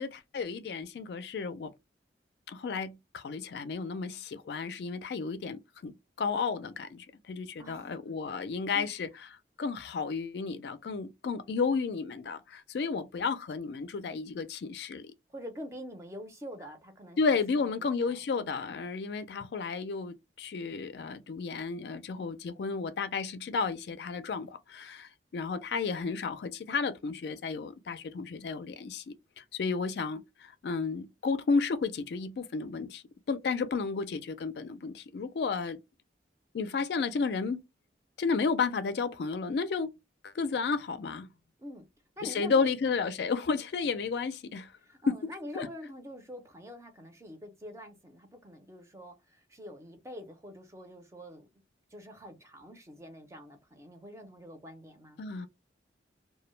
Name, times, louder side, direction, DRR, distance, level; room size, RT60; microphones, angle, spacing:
voice 1, 0.0-1.7 2.5-9.1 9.6-15.0 17.2-33.0 33.3-35.8 36.5-37.6 38.2-39.9 40.2-41.3 42.2-44.7 45.1-45.2 45.6-45.7 55.2-55.5, left 4 dB, 60° left, 0.3 m, -32 dB
voice 2, 7.6-8.0 8.7-9.0 15.3-17.7 18.0-18.8 41.6-41.9 42.2-42.7 44.8-51.5 51.9-55.2, equal, 15° right, 0.5 m, -46 dB
2.2 x 2.0 x 3.0 m
head